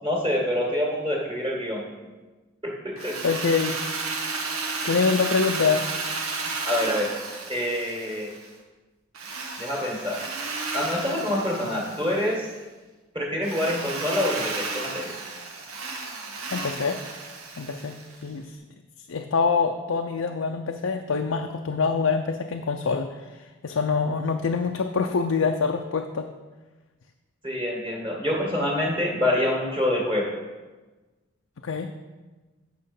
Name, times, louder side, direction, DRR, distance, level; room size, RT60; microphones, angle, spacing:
voice 1, 0.0-1.8 2.6-3.2 6.6-7.1 7.5-8.3 9.6-10.2 10.7-12.5 13.1-15.1 27.4-30.3, left 1 dB, 25° right, -3 dB, 1.8 m, -26 dB
voice 2, 3.0-3.8 4.8-5.8 16.5-17.0 17.6-17.9 18.2-18.5 19.1-26.3 31.6-31.9, left 5 dB, 75° left, 4 dB, 0.5 m, -25 dB
Drill, 3.0-8.5 9.1-12.4 13.4-18.2, right 3 dB, 85° right, 1.3 m, -33 dB
8.9 x 6.0 x 5.4 m, 1.2 s
head